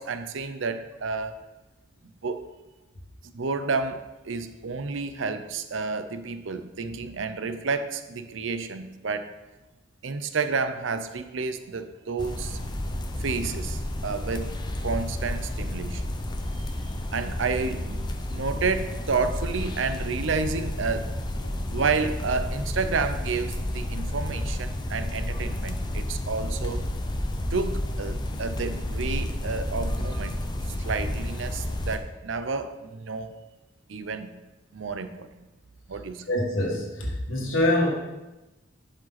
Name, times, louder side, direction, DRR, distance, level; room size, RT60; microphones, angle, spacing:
voice 1, 0.0-1.4 2.2-2.5 3.2-9.3 10.0-12.6 13.2-14.5 14.8-16.0 16.6-16.7 17.1-21.1 21.7-26.9 27.5-30.4 30.8-33.3 33.9-34.3 34.7-35.3 35.9-36.3, right 4 dB, 65° right, 10 dB, 0.6 m, -30 dB
sound 1, 12.2-32.0, left 1 dB, 20° left, 0.6 m, -31 dB
voice 2, 36.3-37.9, left 1 dB, 75° left, -1 dB, 1.8 m, -25 dB
11.0 x 5.2 x 4.1 m, 1.1 s
head